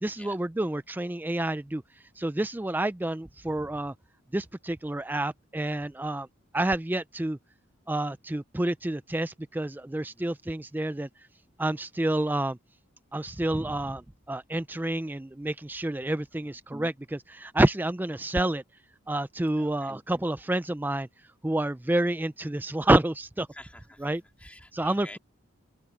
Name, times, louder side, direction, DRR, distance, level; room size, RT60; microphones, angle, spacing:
voice 1, 0.0-1.8 2.2-3.9 4.3-6.3 6.5-7.4 7.9-11.1 11.6-12.6 13.1-14.0 14.3-18.6 19.1-21.1 21.4-23.5 24.0-24.2 24.7-25.2, right 1 dB, 10° right, 0.4 m, -28 dB
voice 2, 19.6-19.9 23.5-25.2, left 1 dB, 5° left, 3.1 m, -49 dB
open air
head